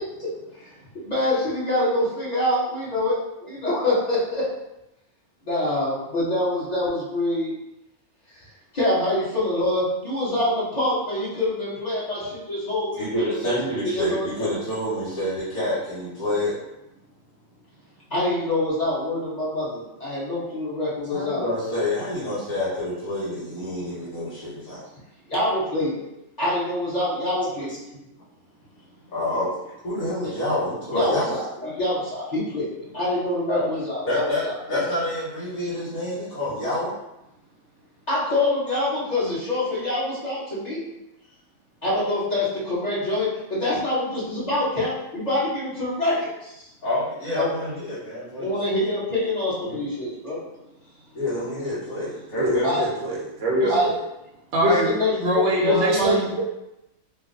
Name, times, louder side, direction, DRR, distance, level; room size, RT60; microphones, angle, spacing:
voice 1, 0.9-4.5 5.4-7.5 8.3-8.4 8.7-13.0 13.4-13.6 13.8-14.5 18.1-21.4 25.3-26.0 26.4-27.7 30.2-30.3 30.9-34.5 38.1-40.8 41.8-46.6 47.3-47.5 48.4-50.4 52.6-52.9 53.6-53.9 54.6-56.1, left 1 dB, 30° left, -9 dB, 1.4 m, -25 dB
voice 2, 13.0-16.5 21.1-24.8 27.6-27.7 29.1-29.5 29.8-31.3 31.6-31.7 33.4-33.7 34.1-36.9 41.8-42.1 46.8-48.5 49.7-49.8 51.1-52.7, left 1 dB, 80° left, -11 dB, 1.6 m, -27 dB
voice 3, 52.4-54.0 54.5-56.4, right 1 dB, 60° right, -3 dB, 0.9 m, -22 dB
3.2 x 2.2 x 3.8 m, 0.89 s
omnidirectional pair, 1.5 m